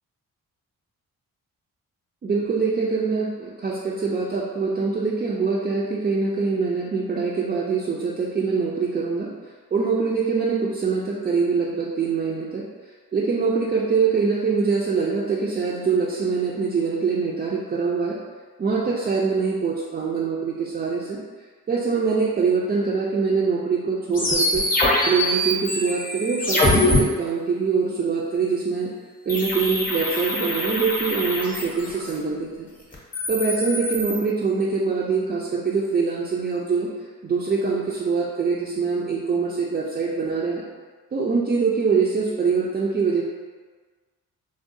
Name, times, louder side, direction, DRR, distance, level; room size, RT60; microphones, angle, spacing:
voice 1, 2.2-9.3 9.7-12.6 13.1-18.2 18.6-21.2 21.7-24.6 25.0-28.9 29.3-32.7 33.3-36.9 37.2-40.6 41.1-43.2, right 5 dB, 30° right, -5 dB, 0.4 m, -24 dB
sound 1, 24.1-27.0 29.3-32.1 32.9-34.2, left 1 dB, 25° left, 0.7 m, -24 dB
3.6 x 2.0 x 2.5 m, 1.4 s
cardioid pair, 85°, 33 cm